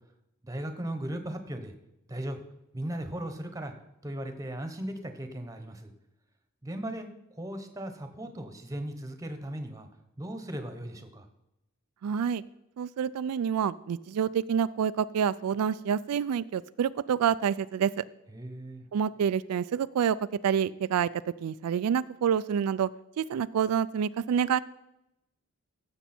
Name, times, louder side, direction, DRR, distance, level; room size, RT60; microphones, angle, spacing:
voice 1, 0.4-1.7 2.1-2.4 2.7-3.7 4.0-5.9 6.6-9.9 10.2-11.3 18.3-18.8, right 1 dB, 15° right, 7 dB, 1.0 m, -37 dB
voice 2, 12.0-12.4 12.8-18.0 18.9-20.2 20.4-22.9 23.2-24.6, right 8 dB, 90° right, 15 dB, 0.3 m, -28 dB
15.5 x 7.2 x 4.4 m, 0.88 s
head